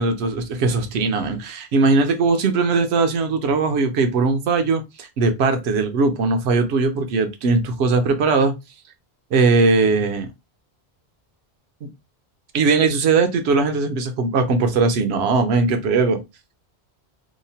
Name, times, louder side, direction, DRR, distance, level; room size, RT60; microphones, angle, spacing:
voice 1, 0.0-8.5 9.3-10.3 11.8-11.9 12.5-16.2, right 4 dB, 85° right, 0.9 m, -19 dB
2.8 x 2.0 x 2.7 m
omnidirectional pair, 1.1 m